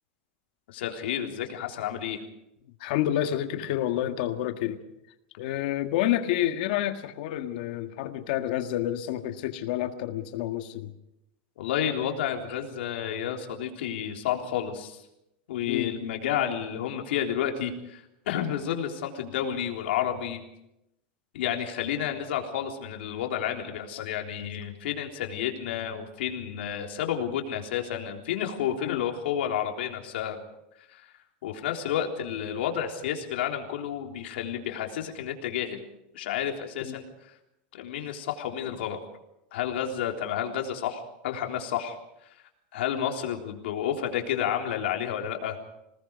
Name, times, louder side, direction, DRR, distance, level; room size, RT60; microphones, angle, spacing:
voice 1, 0.7-2.2 11.6-15.0 15.5-20.4 21.3-30.4 30.9-31.1 31.4-35.8 36.1-37.3 37.7-39.0 39.5-42.0 42.7-45.6, left 9 dB, 85° left, 2 dB, 3.7 m, -31 dB
voice 2, 2.8-4.8 5.4-10.9 15.7-15.9 28.8-29.0 36.8-37.0, left 12 dB, 55° left, 7 dB, 1.7 m, -29 dB
27.0 x 19.5 x 5.3 m, 0.86 s
supercardioid pair, 180°, 6 cm